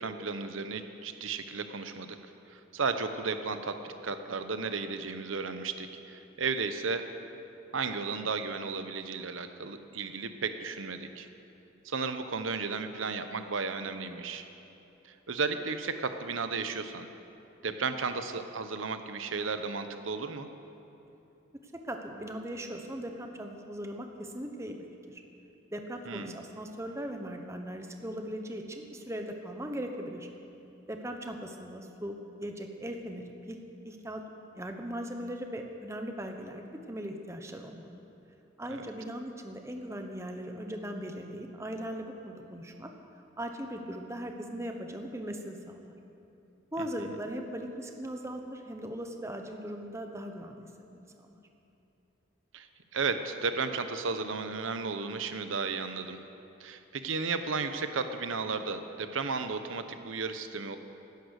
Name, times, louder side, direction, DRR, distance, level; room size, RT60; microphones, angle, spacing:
voice 1, 0.0-2.2 2.5-7.1 7.7-11.3 11.8-14.4 15.0-17.1 17.6-20.5 26.1-26.4 38.7-38.8 47.0-47.1 52.5-52.7 52.9-56.2 56.6-60.8, right 4 dB, 85° right, 9 dB, 0.9 m, -34 dB
voice 2, 21.8-25.2 25.7-30.3 30.9-34.2 34.5-38.0 38.6-42.9 43.4-45.9 46.7-51.4, equal, 15° right, 4 dB, 1.0 m, -39 dB
16.0 x 11.5 x 6.5 m, 2.9 s
head